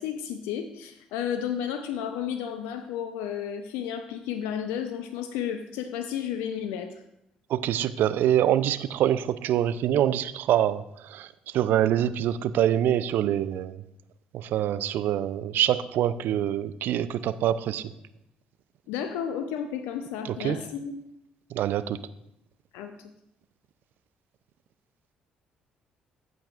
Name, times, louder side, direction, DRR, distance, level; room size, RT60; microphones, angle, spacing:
voice 1, 0.0-6.9 18.9-20.9 22.7-23.1, left 8 dB, 75° left, 8 dB, 0.6 m, -32 dB
voice 2, 7.5-11.3 11.5-13.8 14.3-17.9 20.4-20.6 21.5-22.0, right 11 dB, 65° right, 15 dB, 0.4 m, -25 dB
14.5 x 7.8 x 2.5 m, 0.79 s
hypercardioid pair, 50°, 4 cm